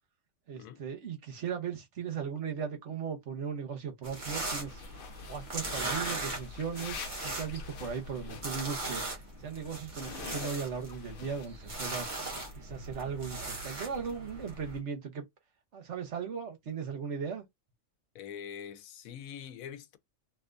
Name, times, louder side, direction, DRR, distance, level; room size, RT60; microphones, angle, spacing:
voice 1, 0.5-4.8 5.3-12.1 12.5-15.2 15.7-17.4, right 6 dB, 60° right, 1.2 m, -37 dB
sound 1, 4.0-14.8, right 2 dB, 35° right, 1.4 m, -39 dB
sound 2, 4.7-9.1 9.4-11.5 11.8-12.0, left 6 dB, 55° left, 0.7 m, -46 dB
voice 2, 18.1-20.0, left 8 dB, 90° left, 1.1 m, -44 dB
3.3 x 2.9 x 2.5 m
omnidirectional pair, 1.4 m